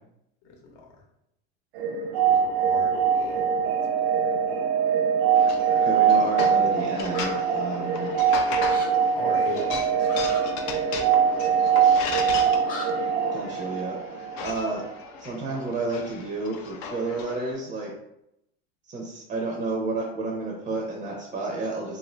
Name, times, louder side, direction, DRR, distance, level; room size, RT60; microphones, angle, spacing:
voice 1, 0.4-1.0 2.2-4.3 9.1-10.3 10.9-11.5, left 3 dB, 65° left, 1 dB, 0.9 m, -40 dB
sound 1, 1.8-14.5, right 7 dB, 85° right, 0.6 m, -23 dB
sound 2, 5.3-17.5, left 5 dB, 45° left, 0.4 m, -37 dB
voice 2, 5.8-8.2 13.3-14.0 14.4-14.8 15.2-17.9 18.9-22.0, right 3 dB, 25° right, -1 dB, 0.5 m, -31 dB
sound 3, 7.1-7.3 8.7-8.9 10.1-10.4 12.6-12.9, left 2 dB, 25° left, 0.8 m, -36 dB
2.6 x 2.4 x 3.1 m, 0.82 s
supercardioid pair, 130°, 31 cm